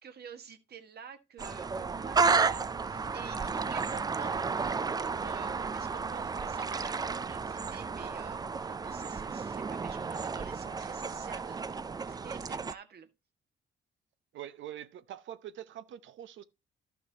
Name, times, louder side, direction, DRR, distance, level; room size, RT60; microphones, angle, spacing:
voice 1, 0.0-4.6 4.9-11.8 12.1-13.1, right 7 dB, 55° right, 1.4 m, -49 dB
sound 1, 1.4-12.7, right 4 dB, 20° right, 0.3 m, -32 dB
voice 2, 14.3-16.4, right 11 dB, 70° right, 0.8 m, -44 dB
12.0 x 5.8 x 2.8 m
cardioid pair, 90°, 20 cm